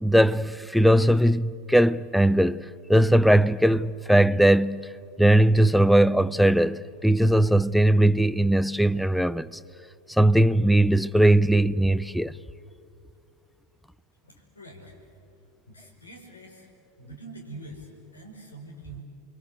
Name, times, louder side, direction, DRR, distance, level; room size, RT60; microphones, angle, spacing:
voice 1, 0.0-4.9 5.2-9.5 10.2-12.3, right 1 dB, ahead, 0.5 m, -20 dB
voice 2, 14.2-15.0 15.7-16.7 17.0-19.0, right 2 dB, 80° left, 5.3 m, -44 dB
29.5 x 23.5 x 8.3 m
figure-of-eight pair, 85°, 0 cm